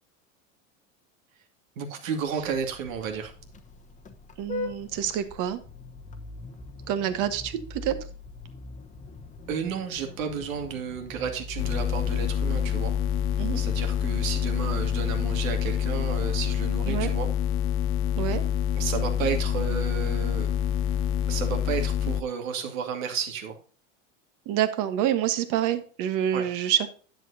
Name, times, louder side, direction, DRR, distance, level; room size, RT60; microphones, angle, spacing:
voice 1, 1.8-3.3 9.5-12.9 13.5-17.3 18.8-20.5 21.3-23.6 26.3-26.5, right 7 dB, 85° right, 5 dB, 2.3 m, -32 dB
Vehicle horn car horn honking, 2.3-17.5, left 2 dB, 20° left, 1.0 m, -43 dB
voice 2, 4.4-5.6 6.9-8.0 13.4-13.6 16.8-17.1 18.2-18.4 24.4-26.9, right 10 dB, 50° right, 10 dB, 1.3 m, -27 dB
sound 1, 11.6-22.2, left 9 dB, 35° left, 0.4 m, -26 dB
10.5 x 7.7 x 2.7 m, 0.40 s
supercardioid pair, 130°, 39 cm